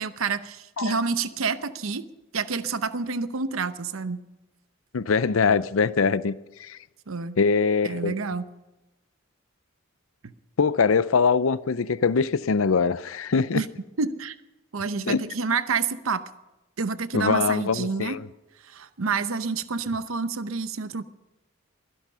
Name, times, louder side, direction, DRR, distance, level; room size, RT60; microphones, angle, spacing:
voice 1, 0.0-2.0 2.3-4.2 7.1-7.4 7.8-8.5 10.2-10.3 13.5-13.7 14.0-14.3 14.7-16.2 16.8-18.2 18.7-21.0, right 4 dB, 75° right, 0.8 m, -28 dB
voice 2, 4.9-6.8 7.4-8.1 10.6-13.6 15.1-15.2 17.1-18.3, left 5 dB, 70° left, 0.6 m, -23 dB
22.5 x 11.0 x 5.6 m
head